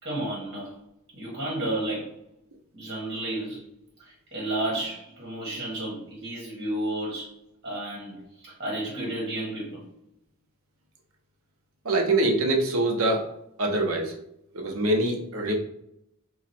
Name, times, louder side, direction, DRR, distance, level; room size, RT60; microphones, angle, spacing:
voice 1, 0.0-0.7 1.1-2.1 2.7-3.6 4.0-7.3 7.6-9.8, right 1 dB, 50° right, -5 dB, 1.5 m, -32 dB
voice 2, 11.8-13.3 13.6-14.2 14.5-15.6, right 2 dB, 75° right, 2 dB, 0.8 m, -24 dB
3.0 x 2.3 x 4.2 m, 0.78 s
head